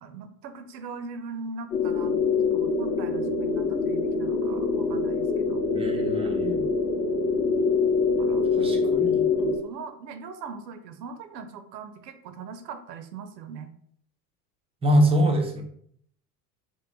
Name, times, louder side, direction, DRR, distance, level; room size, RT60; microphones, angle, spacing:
voice 1, 0.0-2.1 2.4-5.6 8.2-13.7, right 5 dB, 80° right, 9 dB, 0.6 m, -41 dB
sound 1, 1.7-9.6, left 4 dB, 90° left, 0.6 m, -24 dB
voice 2, 5.7-6.6 8.5-9.5 14.8-15.6, equal, 10° right, 2 dB, 0.4 m, -24 dB
3.7 x 2.1 x 3.1 m, 0.66 s
hypercardioid pair, 80°, 50 cm